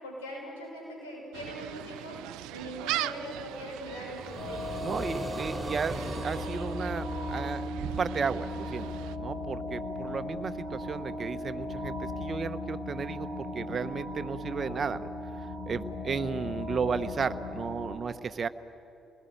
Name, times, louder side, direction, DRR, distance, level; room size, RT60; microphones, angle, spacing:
voice 1, 0.0-2.2 2.5-4.6, equal, 90° left, -2 dB, 6.9 m, -41 dB
Gull seagull, 1.3-9.2, right 15 dB, 75° right, 0.5 m, -40 dB
sound 1, 3.9-7.9, right 2 dB, 20° right, 4.6 m, -40 dB
sound 2, 4.4-17.9, left 1 dB, 60° left, 6.5 m, -37 dB
voice 2, 4.8-8.9 9.2-15.0 15.7-18.5, right 5 dB, 45° right, 11 dB, 1.1 m, -34 dB
29.0 x 20.5 x 9.4 m, 2.9 s
hypercardioid pair, 45°, 0 cm